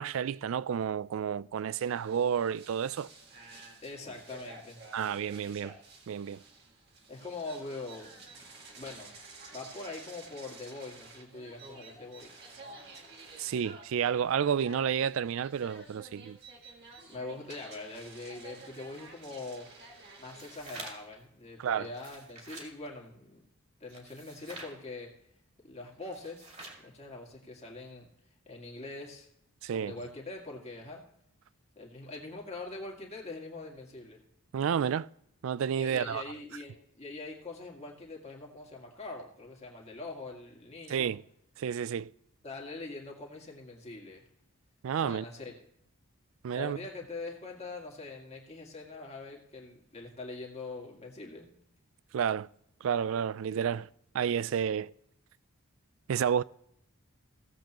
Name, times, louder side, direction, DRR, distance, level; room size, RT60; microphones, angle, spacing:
voice 1, 0.0-3.1 4.9-5.8 6.1-6.4 13.4-16.4 21.6-21.9 29.6-30.0 34.5-35.1 35.4-36.2 40.9-41.2 41.6-42.1 44.8-45.2 46.4-46.8 52.1-52.5 52.8-53.9 54.1-54.9 56.1-56.4, right 8 dB, 65° right, 0.3 m, -30 dB
sound 1, 1.7-21.0, right 3 dB, 45° right, 1.9 m, -52 dB
voice 2, 3.8-4.8 7.1-8.2 8.7-9.1 9.5-12.4 17.1-19.7 20.2-23.4 23.8-25.1 25.6-26.5 26.8-28.1 28.5-29.3 29.7-31.0 31.8-34.2 35.8-41.1 42.4-44.2 45.0-45.5 46.5-51.6, left 3 dB, 30° left, 2.0 m, -43 dB
sound 2, 20.2-21.2 21.8-22.7 23.9-24.8 26.0-26.9, right 2 dB, 30° right, 2.3 m, -47 dB
17.0 x 7.6 x 3.0 m
head